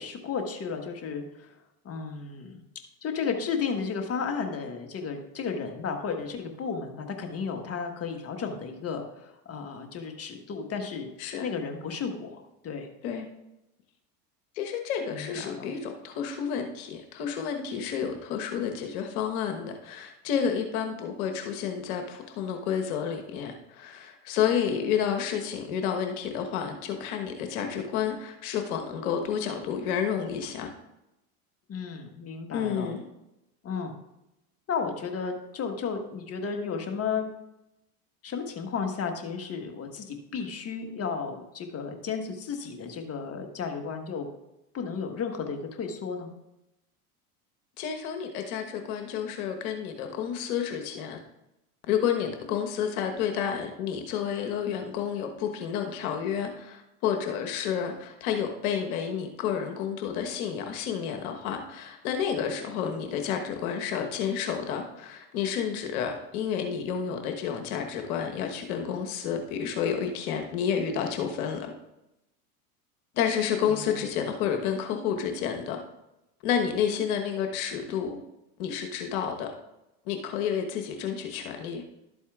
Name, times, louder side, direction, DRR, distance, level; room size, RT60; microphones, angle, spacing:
voice 1, 0.0-1.6 1.8-2.6 3.0-11.1 11.4-12.9 15.1-15.7 31.7-32.9 33.6-33.9 34.7-37.3 38.2-44.3 44.7-46.3 73.7-74.0, left 5 dB, 30° left, 4 dB, 1.4 m, -33 dB
voice 2, 14.5-30.7 32.5-33.1 47.8-51.2 51.9-71.7 73.1-75.8 76.4-78.2 78.6-79.5 80.1-81.8, left 8 dB, 70° left, 4 dB, 1.3 m, -30 dB
11.5 x 8.4 x 2.4 m, 0.90 s
hypercardioid pair, 90°, 46 cm